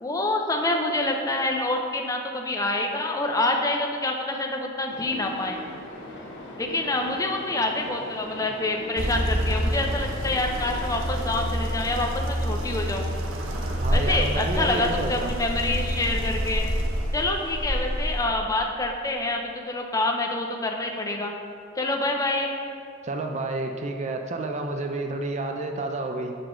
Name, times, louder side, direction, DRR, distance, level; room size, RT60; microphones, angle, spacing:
voice 1, 0.0-5.6 6.6-13.1 13.9-16.7 17.1-21.3 21.8-22.6, left 2 dB, 15° left, 2 dB, 0.5 m, -27 dB
sound 1, 4.9-16.0, left 1 dB, 60° left, 0.9 m, -42 dB
sound 2, 9.0-18.3, equal, 75° right, 0.7 m, -27 dB
voice 2, 13.8-15.3 23.0-26.3, right 2 dB, 35° right, 4 dB, 0.4 m, -30 dB
6.1 x 5.0 x 3.7 m, 2.4 s
head